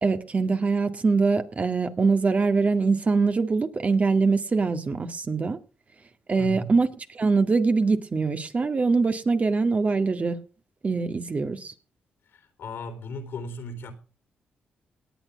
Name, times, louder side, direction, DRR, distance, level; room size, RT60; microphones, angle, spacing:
voice 1, 0.0-5.6 6.3-6.9 7.1-10.4 10.8-11.7, right 4 dB, 40° right, 1.9 m, -23 dB
voice 2, 6.4-6.7 12.3-13.9, left 1 dB, 75° left, 3.8 m, -36 dB
18.0 x 9.2 x 5.2 m
cardioid pair, 70°, 4 cm